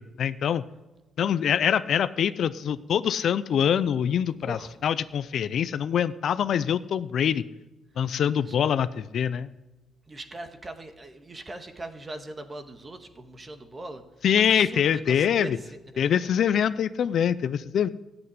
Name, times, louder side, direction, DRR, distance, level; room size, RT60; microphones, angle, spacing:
voice 1, 0.2-0.6 1.2-7.4 8.0-9.5 14.2-15.6 16.0-17.9, left 8 dB, 65° left, 15 dB, 0.6 m, -24 dB
voice 2, 4.4-4.8 8.4-8.6 10.1-16.5, right 2 dB, 30° right, 7 dB, 1.8 m, -41 dB
14.5 x 8.1 x 9.6 m, 1.1 s
cardioid pair, 90°, 0 cm